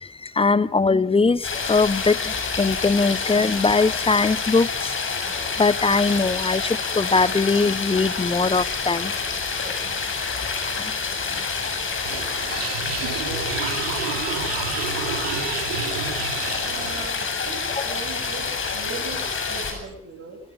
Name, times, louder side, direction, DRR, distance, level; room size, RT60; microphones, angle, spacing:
voice 1, 0.0-4.9 5.6-9.1 13.6-13.7 17.8-17.9, left 4 dB, 20° left, 17 dB, 1.0 m, -21 dB
sound 1, 1.4-19.7, left 5 dB, 45° left, 7.3 m, -28 dB
sound 2, 12.1-17.1, right 8 dB, 80° right, 2.3 m, -30 dB
Alarm, 13.2-13.7 14.5-14.6 15.2-15.4 17.3-17.5 19.3-19.5, left 6 dB, 65° left, 5.5 m, -44 dB
voice 2, 16.6-20.4, right 4 dB, 45° right, 6 dB, 7.5 m, -38 dB
27.5 x 26.0 x 5.3 m, 0.73 s
figure-of-eight pair, 45°, 30 cm